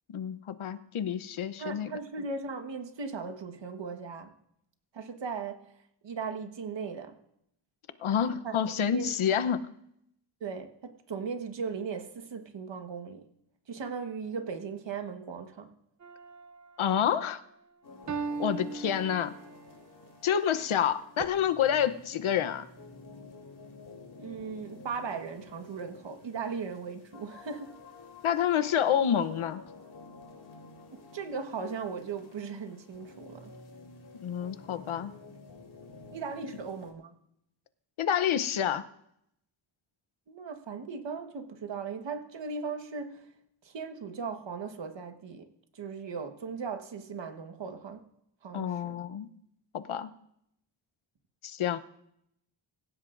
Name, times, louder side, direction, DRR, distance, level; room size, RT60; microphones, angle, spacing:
voice 1, 0.1-1.9 8.0-9.7 16.8-17.4 18.4-19.3 20.2-22.6 28.2-29.6 34.1-35.1 38.0-38.8 48.5-49.3 49.7-50.1 51.4-51.8, left 9 dB, 90° left, 0.9 m, -28 dB
voice 2, 1.6-4.3 4.9-5.7 6.0-7.1 8.4-8.6 8.9-9.4 10.4-13.3 13.7-15.7 24.2-27.8 30.9-33.5 36.1-37.1 40.3-43.3 43.6-48.1 48.4-49.0, right 5 dB, 65° right, 1.5 m, -38 dB
sound 1, 16.0-16.7 18.1-19.7 21.2-21.3, right 4 dB, 35° right, 0.7 m, -38 dB
sound 2, 17.8-36.9, left 3 dB, 55° left, 3.3 m, -51 dB
25.5 x 15.5 x 2.6 m
wide cardioid pair, 165°, 47 cm